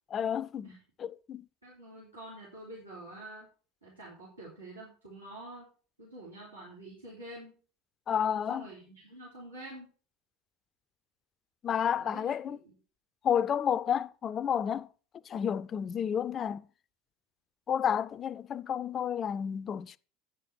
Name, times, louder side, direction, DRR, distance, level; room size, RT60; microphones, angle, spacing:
voice 1, 0.1-0.7 1.0-1.4 8.1-8.7 11.6-12.6 13.2-14.9 15.3-16.6 17.7-20.0, left 8 dB, 35° left, 0.4 m, -31 dB
voice 2, 1.6-3.5 3.8-5.7 6.0-7.6 8.2-9.9 11.9-12.7, right 1 dB, 85° right, 3.5 m, -47 dB
8.8 x 6.7 x 5.9 m
figure-of-eight pair, 70°, 0 cm